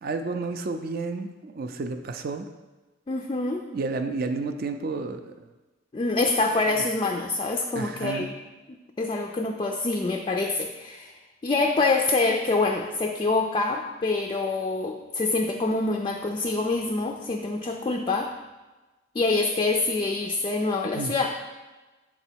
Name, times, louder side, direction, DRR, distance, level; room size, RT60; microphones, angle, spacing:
voice 1, 0.0-2.5 3.7-5.3 7.7-8.3 20.9-21.1, right 3 dB, 50° right, 7 dB, 0.4 m, -31 dB
voice 2, 3.1-3.6 5.9-8.3 8.7-11.1 11.4-18.3 19.1-21.3, left 3 dB, 25° left, 4 dB, 0.3 m, -26 dB
6.2 x 4.0 x 4.5 m, 1.2 s
head